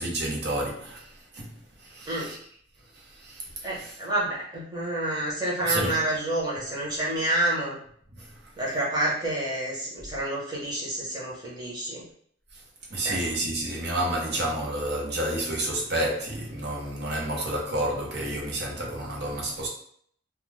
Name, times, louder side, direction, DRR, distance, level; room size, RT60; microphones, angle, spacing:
voice 1, 0.0-1.5 1.8-2.4 2.9-3.9 5.7-5.9 8.1-8.4 12.5-12.6 12.9-19.7, right 1 dB, 60° right, 0.8 m, -30 dB
voice 2, 3.6-7.8 8.6-12.0 13.0-13.2, right 1 dB, 20° right, 0.9 m, -28 dB
2.3 x 2.2 x 3.2 m
head